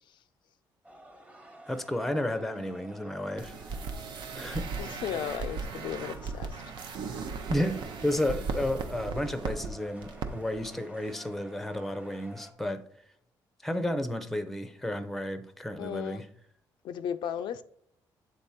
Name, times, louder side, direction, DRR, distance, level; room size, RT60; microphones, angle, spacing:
sound 1, 0.8-12.5, right 1 dB, 15° right, 1.0 m, -51 dB
voice 1, 1.7-3.6 4.3-4.7 7.5-12.9 13.6-16.3, left 1 dB, 5° left, 0.6 m, -32 dB
sound 2, 3.4-9.7 10.0-10.3 10.5-10.7, right 5 dB, 65° right, 0.7 m, -37 dB
voice 2, 4.8-6.6 15.8-16.3 16.8-17.6, left 9 dB, 70° left, 0.3 m, -35 dB
7.7 x 3.5 x 4.1 m
cardioid pair, 95°, 8 cm